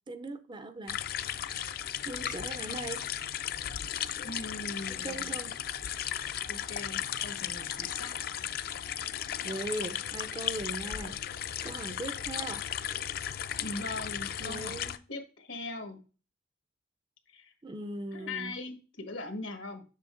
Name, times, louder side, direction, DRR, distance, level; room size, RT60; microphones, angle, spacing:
voice 1, 0.1-1.0 1.3-1.6 2.0-3.1 4.9-5.6 9.4-11.2 11.6-12.7 14.4-15.0 17.6-18.6, right 2 dB, 25° right, 0.4 m, -39 dB
sound 1, 0.9-15.0, left 10 dB, 50° left, 0.4 m, -35 dB
voice 2, 4.2-5.3 6.5-8.2 13.6-14.8 15.1-16.0 17.3-17.5 18.1-19.8, left 2 dB, 85° left, 1.4 m, -40 dB
7.5 x 6.6 x 2.5 m
head